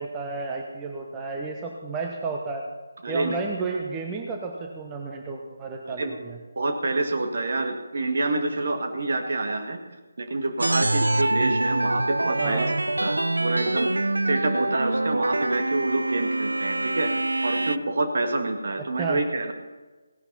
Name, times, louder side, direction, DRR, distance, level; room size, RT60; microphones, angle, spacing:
voice 1, 0.0-2.6 3.1-6.4 12.4-12.7 19.0-19.2, right 4 dB, 15° right, 1 dB, 1.0 m, -32 dB
voice 2, 3.0-3.4 5.9-6.1 6.6-9.8 10.2-12.7 13.0-13.9 14.3-17.1 17.4-19.5, right 2 dB, 45° right, 4 dB, 2.0 m, -27 dB
sound 1, 10.6-17.8, right 2 dB, 70° right, 0.6 m, -25 dB
17.0 x 11.5 x 4.2 m, 1.2 s
figure-of-eight pair, 150°, 0 cm